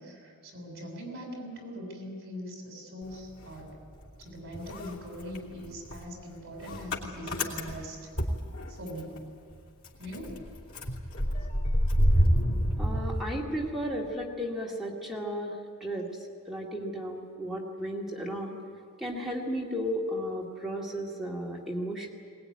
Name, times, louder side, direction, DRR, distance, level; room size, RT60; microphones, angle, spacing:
voice 1, 0.0-3.7 4.2-8.1 8.7-9.3 10.0-10.3, equal, 50° right, 1 dB, 6.8 m, -41 dB
Motor vehicle (road) / Engine starting, 3.0-4.2 4.5-9.2 9.5-9.6 9.8-14.0, equal, 75° left, 3.1 m, -29 dB
voice 2, 12.8-16.1 16.5-18.6 19.0-22.1, equal, ahead, -4 dB, 2.1 m, -34 dB
21.5 x 19.5 x 9.7 m, 2.1 s
head